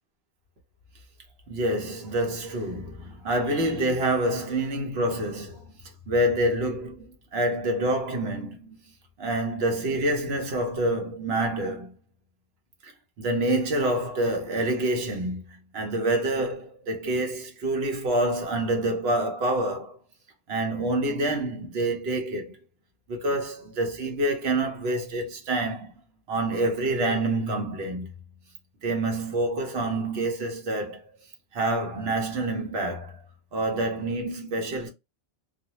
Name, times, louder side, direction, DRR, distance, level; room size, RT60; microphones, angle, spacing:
voice 1, 1.5-5.8 6.1-8.8 9.2-11.9 12.8-12.9 13.2-20.0 20.5-22.6 23.1-25.9 26.3-28.1 28.8-31.0 31.5-33.2 33.5-34.9, right 1 dB, 75° right, 1.1 m, -27 dB
2.6 x 2.1 x 2.9 m
omnidirectional pair, 1.0 m